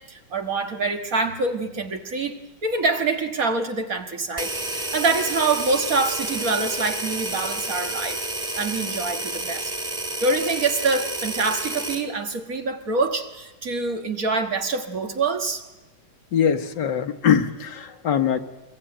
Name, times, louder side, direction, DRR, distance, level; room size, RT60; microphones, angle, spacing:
voice 1, 0.1-2.4 2.6-8.2 8.6-9.8 10.2-15.6, right 3 dB, 50° right, 5 dB, 1.9 m, -25 dB
sound 1, 4.4-12.1, right 2 dB, 20° right, 2.2 m, -30 dB
voice 2, 16.3-18.4, left 8 dB, 70° left, 7 dB, 1.8 m, -22 dB
24.5 x 22.0 x 9.0 m, 1.1 s
omnidirectional pair, 2.0 m